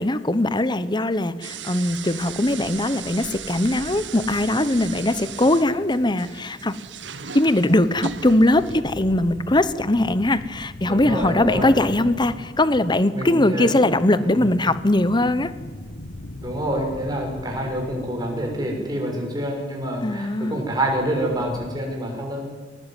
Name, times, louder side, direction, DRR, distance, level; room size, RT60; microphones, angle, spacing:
voice 1, 0.0-6.8 7.3-15.5 20.0-20.6, left 1 dB, 25° left, 14 dB, 1.1 m, -20 dB
sound 1, 1.4-8.8, right 7 dB, 80° right, 1.5 m, -37 dB
sound 2, 1.9-21.8, left 1 dB, 85° left, 1.6 m, -42 dB
voice 2, 10.8-12.0 13.1-13.9 14.2-14.5 16.4-22.4, right 1 dB, 20° right, 0 dB, 6.9 m, -27 dB
28.5 x 21.0 x 9.3 m, 1.3 s
head